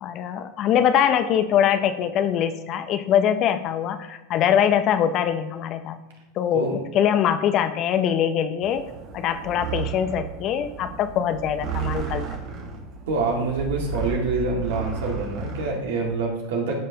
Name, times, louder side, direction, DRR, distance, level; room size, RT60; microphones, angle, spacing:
voice 1, 0.0-6.0 6.4-8.9 9.1-12.3, left 9 dB, 45° left, 10 dB, 0.7 m, -23 dB
sound 1, 8.6-16.2, right 6 dB, 50° right, 1.3 m, -33 dB
voice 2, 13.1-16.7, right 3 dB, 75° right, 0 dB, 2.0 m, -26 dB
13.5 x 5.5 x 2.9 m, 1.0 s
hypercardioid pair, 90°, 0 cm